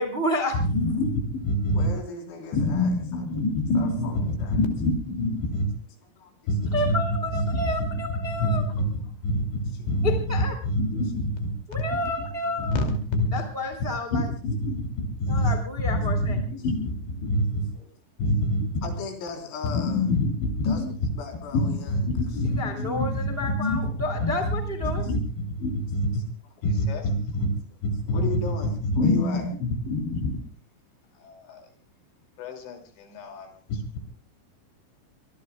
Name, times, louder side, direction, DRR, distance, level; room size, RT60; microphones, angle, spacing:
voice 1, 0.0-0.6 6.7-8.6 10.0-10.5 11.7-12.8 13.3-14.3 15.3-16.4 22.4-25.0, left 1 dB, 20° right, 4 dB, 1.4 m, -30 dB
voice 2, 0.5-1.9 2.5-5.7 6.5-11.8 12.2-12.3 12.6-13.4 14.1-17.7 18.2-18.9 19.7-21.1 21.5-26.1 26.6-27.5 27.8-28.4 28.8-30.5 31.2-31.6 32.4-34.0, left 1 dB, 65° left, 4 dB, 4.8 m, -26 dB
voice 3, 1.7-2.9 3.7-4.6 6.2-6.3 8.8-8.9 9.8-10.0 17.4-17.5 18.8-20.0 20.6-20.8 21.2-22.0 28.1-29.4, left 4 dB, 90° left, 2 dB, 6.7 m, -37 dB
24.5 x 20.5 x 2.3 m, 0.40 s
omnidirectional pair, 5.8 m